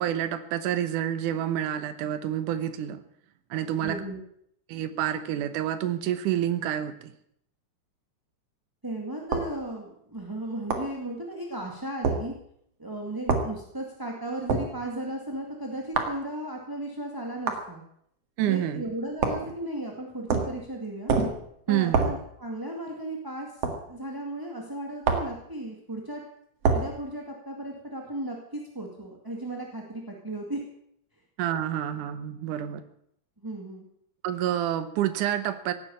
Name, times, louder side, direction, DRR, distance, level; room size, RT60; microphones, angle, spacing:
voice 1, 0.0-3.0 3.5-4.0 4.7-7.1 18.4-18.8 21.7-22.1 31.4-32.8 34.2-35.7, right 11 dB, 85° right, 10 dB, 2.5 m, -28 dB
voice 2, 3.8-4.2 8.8-12.3 12.8-17.8 18.4-21.1 21.7-23.5 23.9-26.2 26.7-30.6 33.4-33.9, right 1 dB, 10° right, 0 dB, 1.5 m, -35 dB
sound 1, 9.3-9.5 10.7-10.9 12.0-12.2 13.3-13.5 14.5-14.7 16.0-16.2 17.5-17.7 19.2-19.5 20.3-20.6 21.1-21.4 21.9-22.2 23.6-23.8 25.0-25.4 26.6-26.9, right 4 dB, 55° right, 2.7 m, -25 dB
17.0 x 9.7 x 8.6 m, 0.71 s
omnidirectional pair, 3.6 m